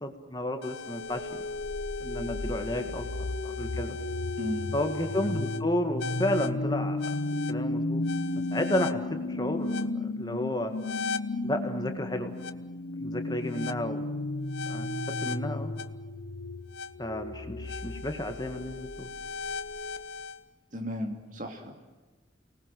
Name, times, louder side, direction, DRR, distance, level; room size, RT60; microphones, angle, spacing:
voice 1, 0.0-1.4 2.0-3.1 3.4-4.0 4.7-7.1 7.5-8.0 8.5-10.7 11.4-12.3 13.0-14.1 14.7-14.9 15.2-15.7 17.0-19.1, left 1 dB, 20° left, 6 dB, 1.8 m, -32 dB
sound 1, 0.6-20.4, left 2 dB, 70° left, 1.0 m, -33 dB
voice 2, 4.4-4.7 20.7-21.7, left 1 dB, 45° right, 3 dB, 2.9 m, -34 dB
29.5 x 20.0 x 7.7 m, 1.3 s
head